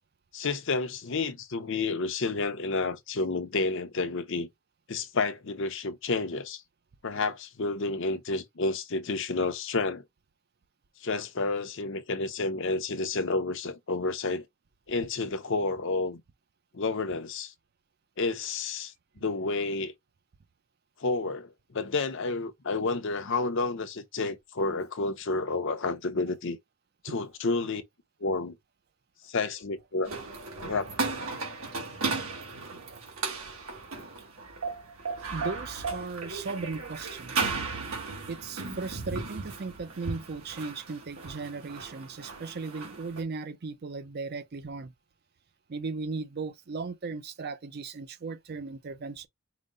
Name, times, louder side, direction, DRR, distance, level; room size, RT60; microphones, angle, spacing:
voice 1, 0.3-4.5 4.9-6.6 7.0-10.0 11.0-14.5 14.9-16.2 16.7-17.5 18.2-18.9 19.2-19.9 21.0-26.6 27.0-27.8 28.2-28.5 29.3-30.1 30.6-31.2, left 3 dB, 60° left, 0.7 m, -30 dB
sound 1, 30.0-43.2, right 4 dB, 75° right, 1.5 m, -35 dB
voice 2, 35.3-37.6 38.3-44.9 45.7-49.3, right 4 dB, 45° right, 0.5 m, -37 dB
5.0 x 2.0 x 3.8 m
head